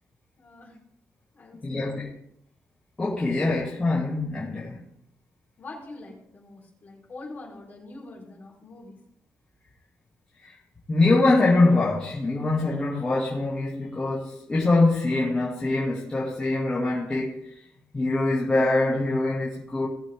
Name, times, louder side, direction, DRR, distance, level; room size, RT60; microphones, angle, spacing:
voice 1, 0.4-0.8 1.3-2.0 5.6-9.0, left 2 dB, 30° left, 4.6 m, -44 dB
voice 2, 1.6-2.1 3.0-4.8 10.4-10.5 10.9-17.5 17.9-19.9, left 2 dB, 15° left, 2.4 m, -23 dB
19.0 x 7.5 x 3.7 m
wide cardioid pair, 175°, 6 cm